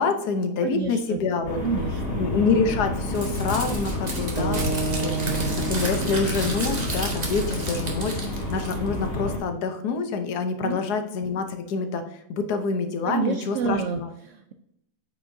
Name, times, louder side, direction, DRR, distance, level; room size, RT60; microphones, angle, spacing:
voice 1, 0.0-1.6 2.2-4.6 5.0-5.1 5.7-14.1, left 4 dB, 90° left, 7 dB, 1.4 m, -26 dB
voice 2, 0.6-1.2 1.6-2.2 10.6-10.9 13.0-14.5, right 4 dB, 70° right, 5 dB, 0.8 m, -29 dB
sound 1, 1.4-9.4, left 1 dB, 40° left, 1.9 m, -30 dB
Crumpling crinkling, 3.1-9.1, right 2 dB, 30° right, 1.2 m, -33 dB
sound 2, 4.4-8.6, right 4 dB, 85° right, 1.3 m, -32 dB
8.6 x 4.9 x 2.7 m, 0.78 s
omnidirectional pair, 1.6 m